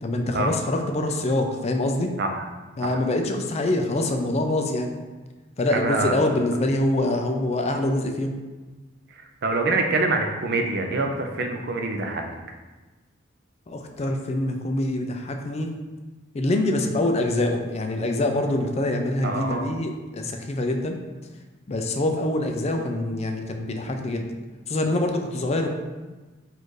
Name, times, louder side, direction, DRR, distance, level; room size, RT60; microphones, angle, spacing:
voice 1, 0.0-2.1 2.8-4.9 5.6-8.3 13.7-15.7 16.3-21.0 21.7-24.2 24.7-25.7, left 1 dB, 35° left, 4 dB, 0.4 m, -25 dB
voice 2, 5.7-6.1 9.4-12.3 19.2-19.6, right 3 dB, 55° right, 4 dB, 0.5 m, -25 dB
4.2 x 2.6 x 4.7 m, 1.2 s
head